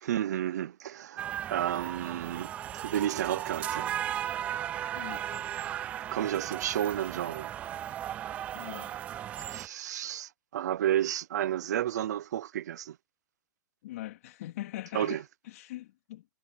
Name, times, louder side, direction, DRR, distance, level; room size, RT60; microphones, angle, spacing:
voice 1, 0.0-2.5 2.8-4.0 6.1-7.5 9.5-13.0 14.9-15.2, right 11 dB, 60° right, 0.7 m, -31 dB
sound 1, 1.2-9.7, right 11 dB, 15° right, 0.4 m, -36 dB
voice 2, 4.9-5.5 8.5-8.9 13.8-16.3, left 15 dB, 50° left, 3.1 m, -42 dB
hypercardioid pair, 165°, 10 cm